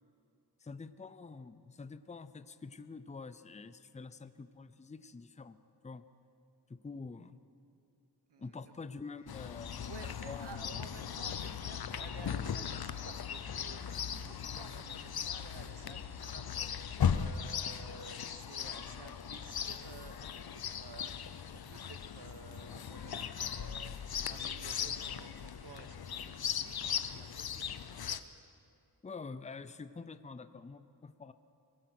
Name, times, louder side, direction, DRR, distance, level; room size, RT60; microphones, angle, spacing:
voice 1, 0.6-5.6 5.8-6.0 6.7-7.4 8.4-9.9 10.3-10.6 29.0-31.3, left 4 dB, 15° left, 12 dB, 0.6 m, -47 dB
voice 2, 8.3-8.7 9.7-28.2, right 6 dB, 85° right, 10 dB, 1.2 m, -54 dB
Chirp tweet, 9.3-28.2, left 8 dB, 65° left, 0.8 m, -38 dB
23.5 x 20.5 x 6.0 m, 2.5 s
wide cardioid pair, 165°, 40 cm